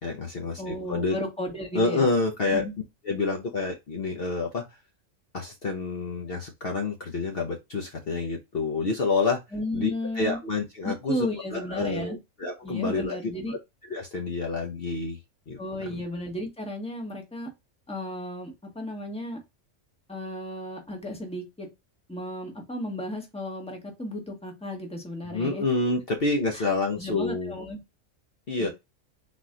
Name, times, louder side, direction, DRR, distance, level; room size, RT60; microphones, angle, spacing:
voice 1, 0.0-1.1 1.7-2.6 3.0-4.6 5.3-9.4 9.7-9.9 10.1-11.2 11.5-13.6 13.9-15.2 15.5-16.0 25.3-27.5 28.5-28.7, left 3 dB, 50° left, 2 dB, 1.0 m, -28 dB
voice 2, 0.6-2.1 2.5-2.7 9.5-10.4 10.8-12.2 12.6-13.5 15.6-17.5 17.9-19.4 20.1-21.7 22.1-25.6 26.5-26.6 27.0-27.8 28.6-28.7, left 1 dB, 5° left, 1 dB, 1.3 m, -34 dB
4.1 x 2.9 x 3.7 m, 0.22 s
omnidirectional pair, 1.3 m